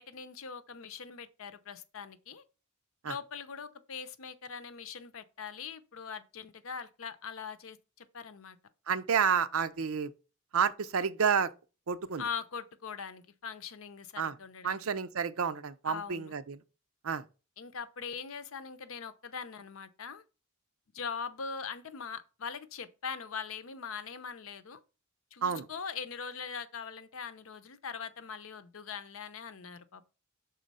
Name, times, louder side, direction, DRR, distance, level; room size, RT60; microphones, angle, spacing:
voice 1, 0.0-2.4 3.1-8.6 12.2-14.9 15.8-16.3 17.6-20.2 20.9-24.8 25.3-30.1, left 6 dB, 70° left, 0.7 m, -41 dB
voice 2, 8.9-10.1 10.5-11.5 11.9-12.2 14.2-14.3 14.6-16.6 17.0-17.2 25.4-25.7, right 6 dB, 80° right, 0.6 m, -30 dB
6.3 x 3.8 x 5.4 m
head